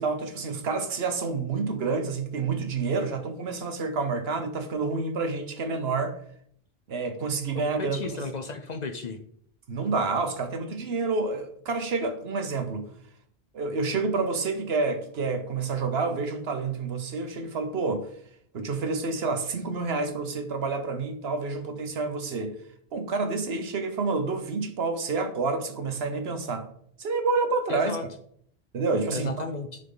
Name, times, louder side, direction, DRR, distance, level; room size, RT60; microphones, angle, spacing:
voice 1, 0.0-6.2 6.9-8.2 9.7-12.9 13.5-18.1 18.5-22.5 22.9-26.7 27.0-28.0 28.7-29.5, right 4 dB, 70° right, 1.2 m, -28 dB
voice 2, 7.5-9.2 27.7-28.1 29.1-29.8, left 4 dB, 50° left, 0.7 m, -34 dB
10.5 x 3.8 x 3.9 m
omnidirectional pair, 1.1 m